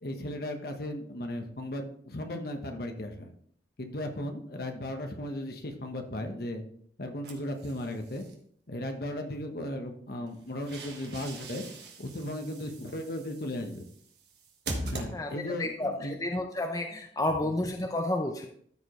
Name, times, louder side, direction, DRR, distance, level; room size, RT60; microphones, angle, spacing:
voice 1, 0.0-3.3 3.8-6.6 7.0-8.2 8.7-11.6 12.0-13.9 14.9-16.2 17.4-17.5, left 1 dB, 55° left, 4 dB, 1.1 m, -36 dB
sound 1, 7.2-8.3 10.3-15.7, right 2 dB, 60° right, 1.5 m, -42 dB
voice 2, 15.1-18.5, left 1 dB, 20° left, 3 dB, 0.6 m, -31 dB
13.5 x 5.0 x 3.1 m, 0.63 s
head